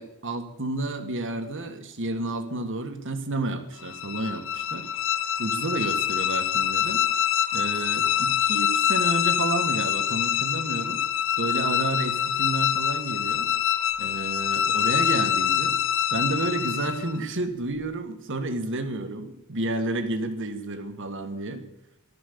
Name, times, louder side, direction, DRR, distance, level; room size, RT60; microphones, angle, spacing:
voice 1, 0.0-4.9 5.4-7.0 7.5-11.0 11.4-13.5 14.0-15.8 16.1-21.6, right 2 dB, 60° right, 8 dB, 1.7 m, -30 dB
sound 1, 3.8-17.2, left 9 dB, 60° left, 0.8 m, -25 dB
15.5 x 12.5 x 6.9 m, 0.86 s
head